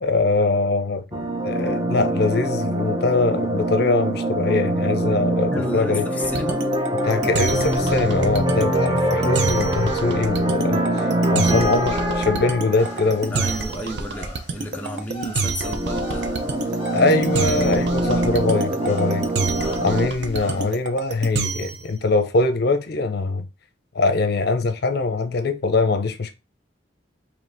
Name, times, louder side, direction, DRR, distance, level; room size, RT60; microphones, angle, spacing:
voice 1, 0.0-6.1 7.0-13.4 16.9-19.3 19.8-23.5 23.9-26.3, left 3 dB, 60° left, 0.6 m, -22 dB
sound 1, 1.1-13.7 15.6-20.1, right 1 dB, 25° right, 0.7 m, -24 dB
voice 2, 5.5-6.6 13.3-16.3 20.4-20.7, equal, 10° left, 0.5 m, -32 dB
sound 2, 6.2-21.9, right 4 dB, 65° right, 0.6 m, -27 dB
sound 3, 12.8-20.7, equal, 35° left, 1.3 m, -39 dB
5.1 x 3.2 x 2.6 m
head